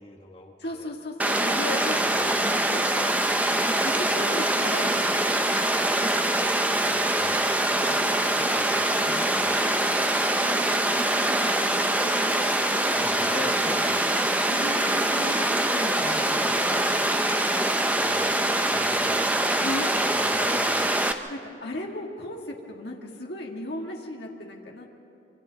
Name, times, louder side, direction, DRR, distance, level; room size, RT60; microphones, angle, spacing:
voice 1, 0.0-0.9 2.0-2.2 6.7-7.5 7.8-8.1 8.4-9.7 12.9-14.0 16.0-18.3 18.6-19.3 19.7-19.8 20.1-20.9, left 1 dB, 30° left, 2 dB, 1.3 m, -43 dB
voice 2, 0.6-3.1 3.8-5.8 8.0-8.1 10.4-13.9 14.5-16.7 19.6-19.9 21.3-24.9, left 1 dB, 60° left, 0 dB, 1.9 m, -37 dB
Water, 1.2-21.1, right 1 dB, 10° right, 0.6 m, -24 dB
26.5 x 26.0 x 4.0 m, 2.6 s
head